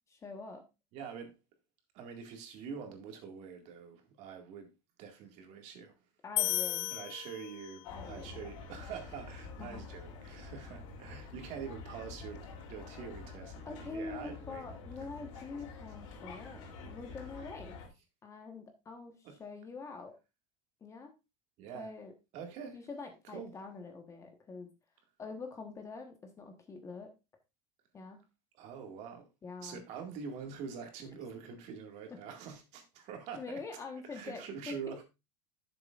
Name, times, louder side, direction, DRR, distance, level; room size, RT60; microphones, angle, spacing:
voice 1, 0.1-0.6 6.2-6.9 7.9-8.4 9.6-9.9 13.6-17.8 18.2-20.2 20.8-21.1 21.7-22.1 22.7-24.7 25.2-27.1 27.9-28.2 29.4-29.8 32.1-32.2 33.3-35.0, left 4 dB, 20° left, 1.2 m, -45 dB
voice 2, 0.9-1.4 1.9-4.7 5.0-5.9 6.9-14.7 19.2-19.4 21.6-21.9 22.3-22.8 23.2-23.5 28.6-29.3 29.6-33.6 34.1-35.0, right 6 dB, 45° right, 2.0 m, -45 dB
sound 1, 6.4-8.0, left 17 dB, 60° left, 0.5 m, -34 dB
sound 2, 7.8-17.9, left 4 dB, 80° left, 3.1 m, -47 dB
11.0 x 7.1 x 2.5 m
supercardioid pair, 155°, 16 cm